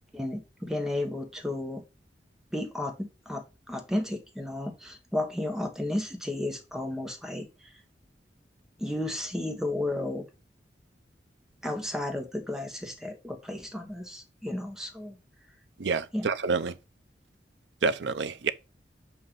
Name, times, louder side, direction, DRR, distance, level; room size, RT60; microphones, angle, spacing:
voice 1, 0.1-1.8 2.5-7.8 8.8-10.3 11.6-15.2 16.1-16.3, left 1 dB, 5° right, 1.1 m, -33 dB
voice 2, 15.8-16.7 17.8-18.5, right 4 dB, 90° right, 0.6 m, -28 dB
6.9 x 2.8 x 5.7 m
head